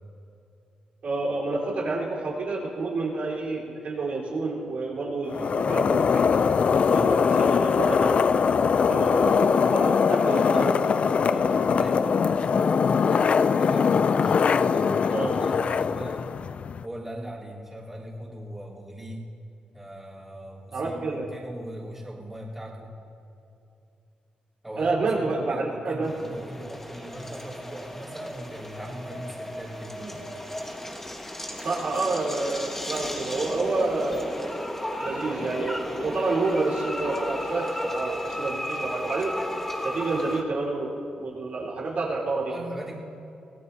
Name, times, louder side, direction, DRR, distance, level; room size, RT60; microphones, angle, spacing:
voice 1, 1.0-8.1 8.8-10.7 11.3-11.5 15.1-15.3 20.7-21.3 24.8-26.1 30.0-30.2 31.6-34.4 34.9-39.3 39.8-42.6, right 3 dB, 65° right, -6 dB, 4.1 m, -29 dB
sound 1, 5.3-16.8, left 6 dB, 55° left, 0.4 m, -22 dB
voice 2, 6.9-7.2 10.2-16.3 16.8-19.3 19.7-22.9 24.6-30.0 42.5-43.0, right 1 dB, 10° right, -7 dB, 3.7 m, -39 dB
sound 2, 26.0-40.4, equal, 10° left, 1.6 m, -34 dB
25.0 x 17.0 x 2.8 m, 2.7 s
cardioid pair, 80°, 3 cm